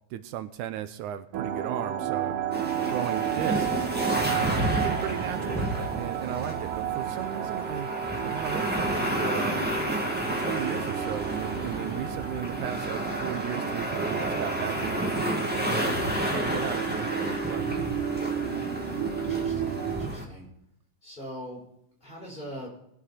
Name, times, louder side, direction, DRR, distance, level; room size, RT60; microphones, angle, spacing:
voice 1, 0.1-2.4 2.9-3.9 4.4-7.9 8.2-9.7 10.3-17.7, right 11 dB, 85° right, 12 dB, 2.2 m, -36 dB
sound 1, 1.3-20.1, right 8 dB, 65° right, 1.7 m, -32 dB
sound 2, 2.5-20.2, equal, 5° right, 1.3 m, -31 dB
voice 2, 19.2-20.5 21.0-21.6 22.0-22.7, equal, 15° left, -3 dB, 5.3 m, -41 dB
20.5 x 7.5 x 4.2 m, 0.76 s
omnidirectional pair, 3.5 m